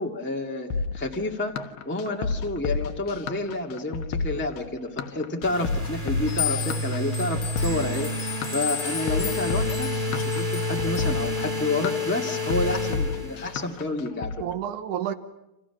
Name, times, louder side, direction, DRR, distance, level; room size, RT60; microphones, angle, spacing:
voice 1, 0.0-1.5 1.8-8.1 8.5-14.3, left 2 dB, 5° left, 0.9 m, -29 dB
sound 1, 0.7-14.4, left 4 dB, 75° left, 3.0 m, -31 dB
sound 2, 5.4-13.7, left 1 dB, 15° right, 1.7 m, -30 dB
sound 3, 6.3-11.3, left 8 dB, 45° left, 1.4 m, -34 dB
voice 2, 10.7-11.1 13.6-13.7 14.3-15.1, right 10 dB, 65° right, 2.3 m, -32 dB
29.5 x 27.5 x 6.0 m
omnidirectional pair, 4.4 m